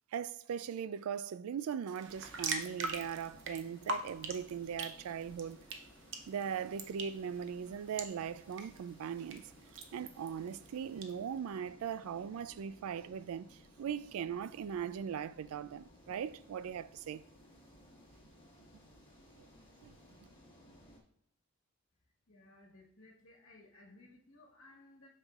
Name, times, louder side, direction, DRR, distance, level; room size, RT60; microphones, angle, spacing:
voice 1, 0.1-5.6 6.3-9.4 9.9-17.2 19.8-19.9, right 7 dB, 80° right, 0.3 m, -39 dB
sound 1, 1.9-11.1, right 3 dB, 55° right, 0.7 m, -44 dB
sound 2, 2.1-21.0, equal, 25° left, 1.5 m, -60 dB
voice 2, 22.3-25.1, left 2 dB, 70° left, 1.3 m, -59 dB
8.1 x 5.5 x 2.4 m
head